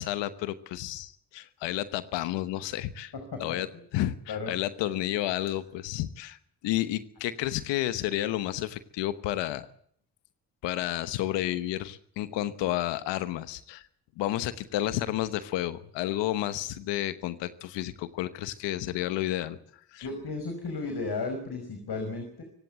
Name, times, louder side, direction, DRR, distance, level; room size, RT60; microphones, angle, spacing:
voice 1, 0.0-3.1 3.4-3.7 3.9-6.4 6.6-9.7 10.6-13.9 14.2-19.6 19.9-20.1, left 14 dB, 90° left, 14 dB, 1.1 m, -31 dB
voice 2, 3.1-3.8 4.3-4.6 5.3-5.5 20.0-22.4, left 3 dB, 65° left, 6 dB, 5.6 m, -35 dB
24.0 x 17.0 x 8.2 m, 0.64 s
supercardioid pair, 40°, 42 cm